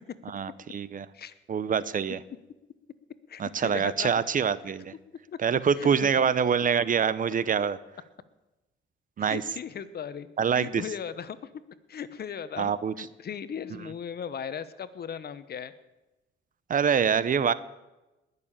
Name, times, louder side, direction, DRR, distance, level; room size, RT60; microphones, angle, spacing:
voice 1, 0.3-1.1 1.5-2.2 3.4-4.9 5.4-7.8 9.2-9.4 10.4-10.8 12.6-13.1 16.7-17.5, right 7 dB, 45° right, 17 dB, 0.7 m, -25 dB
voice 2, 3.3-4.1 5.8-6.1 9.2-11.4 11.9-15.7, left 8 dB, 55° left, 14 dB, 1.0 m, -37 dB
20.5 x 6.9 x 8.9 m, 1.0 s
cardioid pair, 90°, 20 cm